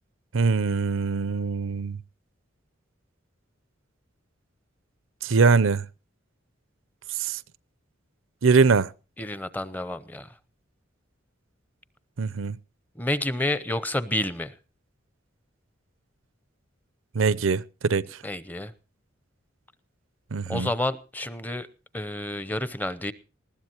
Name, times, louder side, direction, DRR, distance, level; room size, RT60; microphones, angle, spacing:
voice 1, 0.3-2.0 5.2-5.9 7.2-7.4 8.4-8.9 12.2-12.6 17.1-18.0 20.3-20.7, right 4 dB, 85° right, 0.6 m, -22 dB
voice 2, 9.2-10.3 13.0-14.5 18.2-18.7 20.5-21.7 21.9-23.1, left 1 dB, 10° left, 0.7 m, -29 dB
20.0 x 15.0 x 2.9 m
head